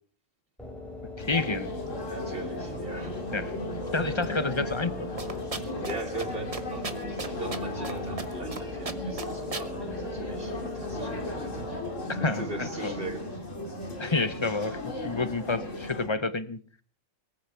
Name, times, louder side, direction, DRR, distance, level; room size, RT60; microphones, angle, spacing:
sound 1, 0.6-12.3, left 4 dB, ahead, 3.7 m, -40 dB
sound 2, 1.2-16.1, left 1 dB, 75° left, 3.1 m, -36 dB
voice 1, 1.2-1.7 3.3-3.6 3.9-5.1 12.1-12.9 14.0-16.6, left 3 dB, 25° left, 13 dB, 0.8 m, -29 dB
voice 2, 2.1-3.1 5.7-11.6 12.2-13.3 13.6-13.9, right 2 dB, 45° right, 3 dB, 3.4 m, -40 dB
sound 3, 5.2-5.9 6.2-6.3 6.5-8.6 8.8-9.7, right 4 dB, 30° right, 1.1 m, -35 dB
20.0 x 14.5 x 4.6 m, 0.44 s
omnidirectional pair, 1.3 m